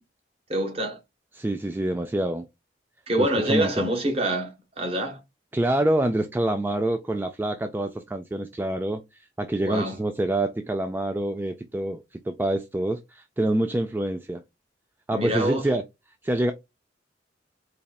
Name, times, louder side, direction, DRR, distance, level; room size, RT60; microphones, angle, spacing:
voice 1, 0.5-1.0 3.1-5.2 9.6-10.0 15.1-15.7, right 1 dB, 35° right, 1.2 m, -26 dB
voice 2, 1.3-2.5 3.2-3.9 5.5-14.4 15.1-15.8 16.2-16.5, right 1 dB, 10° right, 0.3 m, -26 dB
4.1 x 3.1 x 2.3 m
head